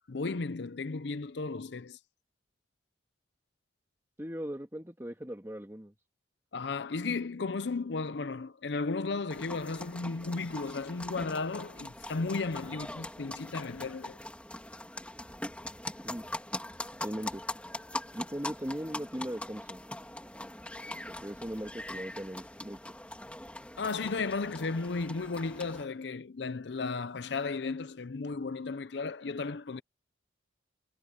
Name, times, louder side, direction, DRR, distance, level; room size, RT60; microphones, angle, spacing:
voice 1, 0.1-2.0 6.5-14.2 23.8-29.8, left 4 dB, 70° left, 0.6 m, -34 dB
voice 2, 4.2-5.9 12.6-12.8 16.0-16.3 17.0-17.4 18.1-19.8 21.1-22.8, equal, 15° right, 1.9 m, -39 dB
sound 1, 9.3-25.8, left 1 dB, 5° left, 3.4 m, -42 dB
head